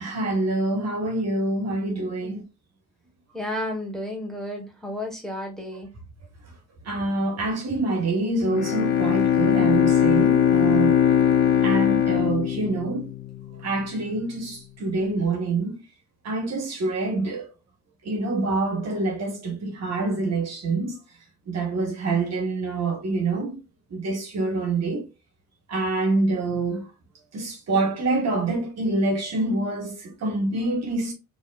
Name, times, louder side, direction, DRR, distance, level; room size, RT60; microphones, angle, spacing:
voice 1, 0.0-2.4 6.8-11.0 11.6-13.1 13.5-15.8 16.2-17.5 18.0-21.0 21.4-23.6 23.9-25.0 25.7-26.8 27.3-31.1, right 2 dB, 60° right, 1.7 m, -26 dB
voice 2, 3.3-5.9, left 1 dB, ahead, 1.5 m, -32 dB
Bowed string instrument, 8.5-13.7, left 9 dB, 70° left, 0.9 m, -20 dB
4.2 x 3.3 x 2.5 m
cardioid pair, 90°, 30 cm